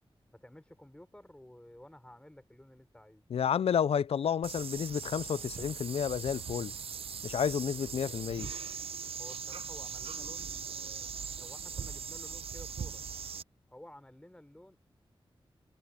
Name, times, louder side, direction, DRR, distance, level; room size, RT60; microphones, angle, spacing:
voice 1, 0.3-3.2 9.2-13.0 13.7-14.8, left 1 dB, 10° left, 5.5 m, -53 dB
voice 2, 3.3-6.7 7.2-8.5, left 8 dB, 90° left, 0.4 m, -30 dB
sound 1, 4.4-13.4, right 6 dB, 75° right, 0.6 m, -40 dB
wide cardioid pair, 80°, 10 cm